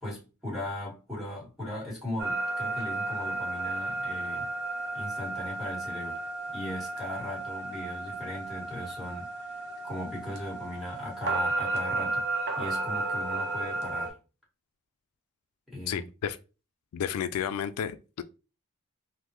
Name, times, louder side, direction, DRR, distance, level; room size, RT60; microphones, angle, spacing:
voice 1, 0.0-4.5 4.9-6.2 6.5-9.4 9.8-12.3 12.6-14.1 15.7-16.1, left 1 dB, ahead, 1.4 m, -38 dB
sound 1, 2.2-14.1, right 2 dB, 50° right, 0.7 m, -33 dB
voice 2, 15.9-16.4 16.9-18.2, left 8 dB, 85° left, 0.3 m, -32 dB
3.4 x 2.1 x 3.0 m
head